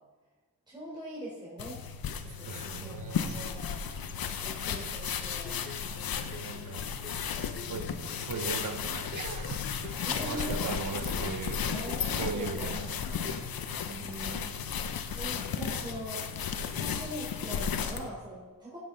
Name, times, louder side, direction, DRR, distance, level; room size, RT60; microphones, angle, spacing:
voice 1, 0.7-1.8 2.2-3.9 4.4-5.7 10.0-10.8 11.7-13.2 13.8-14.6 15.1-16.3 16.7-18.8, right 1 dB, 10° right, -7 dB, 3.7 m, -42 dB
sound 1, 1.6-18.1, left 7 dB, 90° left, 0.8 m, -34 dB
voice 2, 2.2-3.5 6.3-6.9 7.6-11.7 12.1-13.5 14.7-14.8, right 5 dB, 65° right, 10 dB, 0.9 m, -39 dB
sound 2, 5.3-13.6, left 6 dB, 40° left, 0.7 m, -46 dB
16.0 x 7.7 x 3.9 m, 1.3 s
cardioid pair, 70°, 35 cm